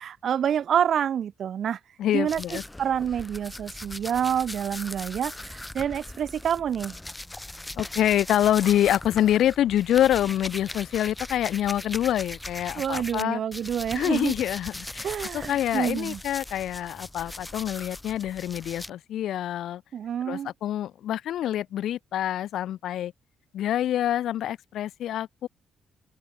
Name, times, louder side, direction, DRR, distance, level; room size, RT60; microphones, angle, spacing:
voice 1, 0.0-1.8 2.1-6.9 12.8-14.3 15.0-16.2 19.9-20.5, right 9 dB, 55° right, 0.7 m, -28 dB
voice 2, 2.0-2.6 7.8-13.4 13.9-15.1 15.3-19.8 20.3-23.1 23.5-25.5, left 11 dB, 75° left, 1.7 m, -26 dB
sound 1, 2.3-13.2 13.5-18.9, left 1 dB, 10° left, 2.0 m, -39 dB
cardioid pair, 145°, 0 cm